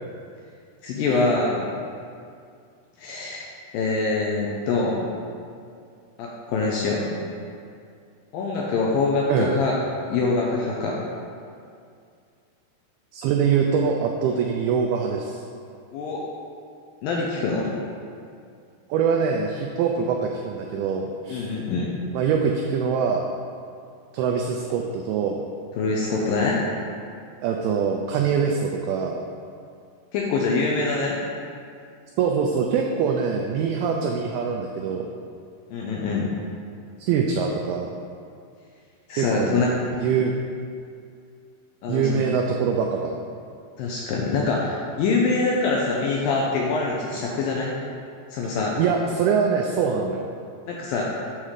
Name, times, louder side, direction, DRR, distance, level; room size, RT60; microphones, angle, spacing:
voice 1, 0.8-1.7 3.0-3.5 3.7-5.1 6.2-7.2 8.3-9.7 10.1-11.0 15.9-16.2 17.0-17.7 21.3-21.9 25.8-26.7 30.1-31.2 35.7-36.3 39.1-39.7 41.8-42.2 43.8-47.8 48.3-48.8 50.7-51.2, left 3 dB, 85° left, -3 dB, 2.0 m, -24 dB
voice 2, 13.1-15.4 18.9-21.5 22.1-23.3 24.1-25.4 27.4-29.3 32.2-35.1 37.0-37.9 39.2-39.7 40.0-40.3 41.9-43.2 48.8-50.3, right 6 dB, 90° right, 1 dB, 2.2 m, -24 dB
8.9 x 3.7 x 6.6 m, 2.3 s
omnidirectional pair, 5.0 m